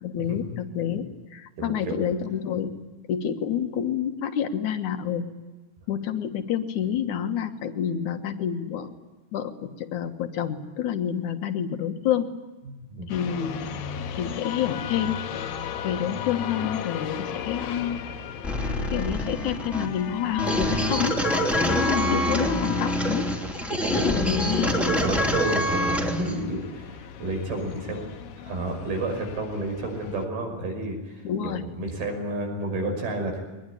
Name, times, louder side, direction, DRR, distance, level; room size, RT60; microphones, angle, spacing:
voice 1, 0.0-5.2 5.9-8.9 9.3-12.3 13.1-13.7 14.2-15.2 15.8-18.0 18.9-21.3 21.7-23.4 23.9-24.7 31.2-31.7, left 9 dB, 60° left, 7 dB, 2.6 m, -28 dB
voice 2, 1.6-2.0 12.6-13.1 23.8-24.1 24.6-28.0 28.4-33.4, right 2 dB, 75° right, 3 dB, 7.7 m, -31 dB
sound 1, 13.1-30.2, left 8 dB, 75° left, 3.2 m, -36 dB
sound 2, 18.4-26.4, equal, ahead, 2.3 m, -26 dB
23.0 x 20.5 x 10.0 m, 1.2 s
omnidirectional pair, 4.5 m